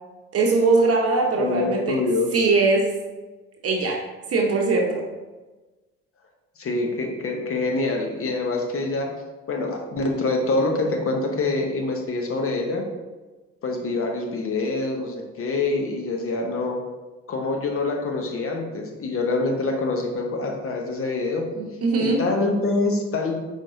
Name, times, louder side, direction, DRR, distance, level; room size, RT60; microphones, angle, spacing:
voice 1, 0.3-1.8 2.3-2.9 3.6-4.0 4.3-5.0 21.6-22.2, right 3 dB, 45° right, 0 dB, 0.9 m, -21 dB
voice 2, 1.3-2.3 6.6-9.1 9.5-12.9 13.6-16.8 17.3-21.5 22.0-23.3, left 3 dB, 45° left, 2 dB, 1.0 m, -25 dB
5.2 x 3.6 x 2.7 m, 1.2 s
hypercardioid pair, 55°, 32 cm